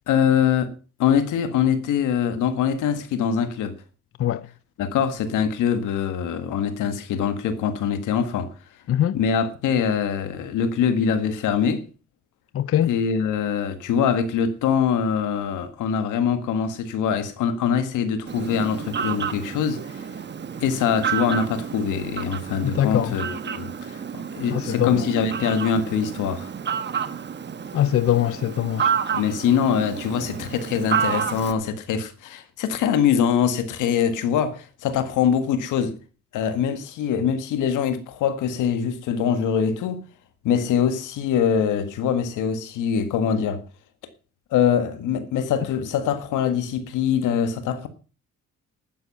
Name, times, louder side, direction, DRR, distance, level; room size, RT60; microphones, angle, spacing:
voice 1, 0.1-0.7 1.0-3.8 4.8-8.5 9.1-11.8 12.8-19.8 20.6-26.5 29.1-35.9 36.3-40.0 40.4-43.6 44.5-47.9, left 7 dB, 90° left, 1.8 m, -23 dB
voice 2, 12.5-12.9 22.7-23.1 24.5-25.0 27.7-28.9, left 11 dB, 50° left, 0.6 m, -22 dB
Fowl, 18.3-31.5, right 7 dB, 35° right, 1.1 m, -30 dB
11.5 x 9.9 x 5.6 m
cardioid pair, 90°, 30 cm